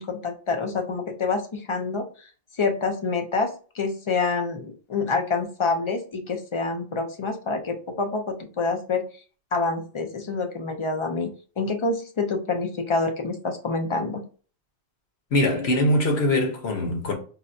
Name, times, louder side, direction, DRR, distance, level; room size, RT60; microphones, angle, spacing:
voice 1, 0.0-2.1 2.5-9.1 9.5-14.2, left 4 dB, 40° left, 0.4 m, -27 dB
voice 2, 15.3-17.1, left 1 dB, 85° left, 1.1 m, -22 dB
4.1 x 2.1 x 2.5 m
omnidirectional pair, 1.1 m